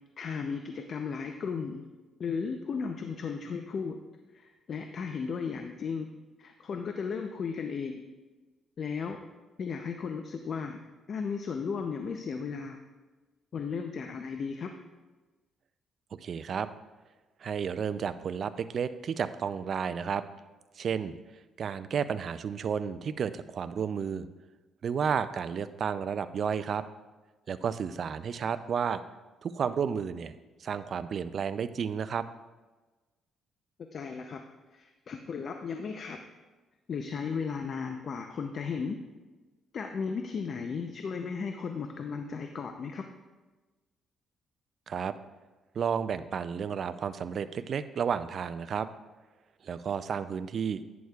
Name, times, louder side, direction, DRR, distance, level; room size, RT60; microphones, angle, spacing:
voice 1, 0.2-1.8 2.2-4.0 4.3-6.1 6.4-8.0 8.8-9.2 9.6-10.8 11.1-12.8 13.5-14.7 33.9-34.4 34.7-36.2 36.9-39.0 39.7-43.0, left 5 dB, 55° left, 5 dB, 0.6 m, -35 dB
voice 2, 16.2-16.7 17.4-20.2 20.8-21.1 21.6-24.3 24.8-26.8 27.5-29.0 29.4-30.3 30.6-32.3 44.9-45.1 45.7-48.9 49.6-50.8, right 7 dB, 55° right, 12 dB, 0.4 m, -32 dB
11.0 x 9.3 x 2.4 m, 1.2 s
cardioid pair, 90°, 0 cm